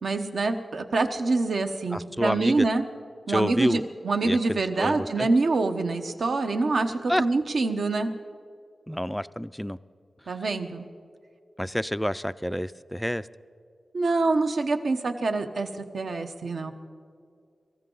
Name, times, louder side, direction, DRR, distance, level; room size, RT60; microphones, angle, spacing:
voice 1, 0.0-2.8 3.3-8.1 10.3-10.9 13.9-16.7, right 3 dB, 70° right, 6 dB, 0.9 m, -25 dB
voice 2, 1.9-2.7 3.3-3.8 4.2-5.3 7.1-7.2 8.9-9.8 11.6-13.3, equal, 5° left, 15 dB, 0.3 m, -28 dB
23.5 x 14.5 x 3.9 m, 2.3 s
wide cardioid pair, 100°, 0 cm